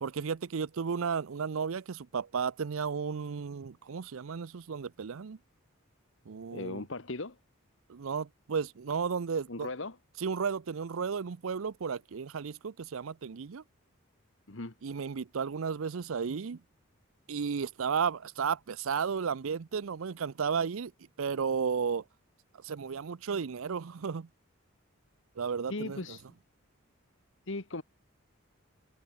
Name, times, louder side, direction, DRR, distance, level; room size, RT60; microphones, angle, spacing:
voice 1, 0.0-5.4 6.3-6.8 7.9-9.7 10.2-13.6 14.8-16.6 17.3-20.9 21.2-22.0 22.5-24.3 25.4-26.2, right 6 dB, 75° right, 0.5 m, -33 dB
voice 2, 6.5-7.4 9.5-10.0 14.5-14.7 25.7-26.2 27.5-27.8, left 2 dB, 60° left, 1.5 m, -37 dB
head